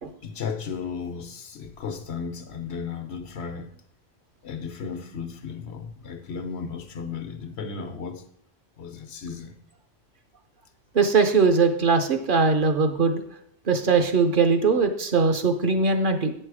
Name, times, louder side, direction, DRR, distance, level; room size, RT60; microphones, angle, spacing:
voice 1, 0.2-3.7 4.4-8.2 8.8-9.5, left 5 dB, 90° left, 1.1 m, -34 dB
voice 2, 10.9-13.2 13.7-16.3, right 4 dB, 55° right, 0.9 m, -21 dB
8.7 x 5.5 x 4.8 m
omnidirectional pair, 1.1 m